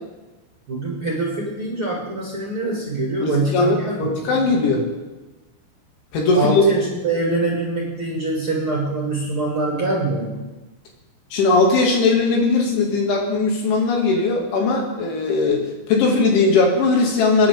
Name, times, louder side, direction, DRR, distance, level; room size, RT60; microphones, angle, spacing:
voice 1, 0.7-4.5 6.3-10.4, right 2 dB, 35° right, -3 dB, 2.3 m, -24 dB
voice 2, 3.2-4.9 6.1-6.7 11.3-17.5, left 3 dB, 70° left, -1 dB, 4.7 m, -19 dB
28.0 x 10.5 x 3.7 m, 1.1 s
omnidirectional pair, 5.8 m